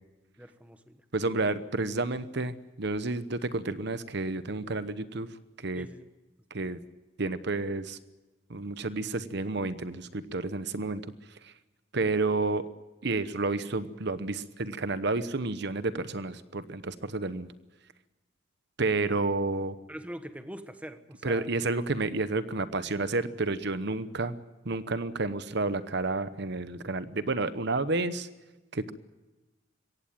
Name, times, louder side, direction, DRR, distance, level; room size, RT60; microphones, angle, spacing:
voice 1, 0.4-1.0 5.7-6.1 19.9-21.5, equal, 5° right, 9 dB, 1.2 m, -43 dB
voice 2, 1.1-5.3 5.6-5.9 6.5-6.8 7.2-8.0 8.5-11.0 11.4-11.5 11.9-12.7 13.0-17.5 18.8-19.7 21.2-24.3 24.6-28.3 28.7-28.9, right 3 dB, 55° right, 13 dB, 1.0 m, -30 dB
23.0 x 17.5 x 9.0 m, 1.1 s
head